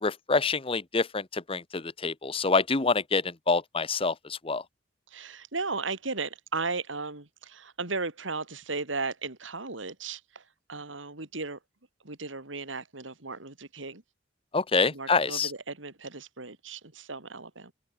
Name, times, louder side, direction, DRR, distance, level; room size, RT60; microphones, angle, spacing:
voice 1, 0.0-4.6 14.5-15.5, left 4 dB, 30° left, 0.9 m, -26 dB
voice 2, 5.1-10.4 10.7-11.6 12.0-14.0 14.9-17.7, right 3 dB, 85° right, 3.2 m, -36 dB
open air
head